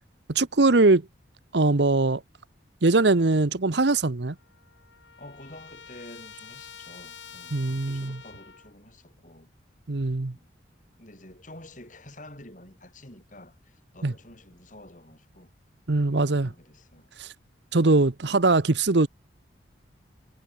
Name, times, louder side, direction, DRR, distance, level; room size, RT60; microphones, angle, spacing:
voice 1, 0.3-1.0 1.5-2.2 2.8-4.3 7.5-8.2 9.9-10.3 14.0-14.1 15.9-16.5 17.2-17.3 17.7-19.1, right 3 dB, 65° right, 1.0 m, -21 dB
Trumpet, 4.0-4.1 4.3-8.7, left 7 dB, 75° left, 5.1 m, -47 dB
voice 2, 5.2-9.5 10.3-10.5 11.0-15.5 16.1-17.1, left 1 dB, 40° left, 7.5 m, -49 dB
head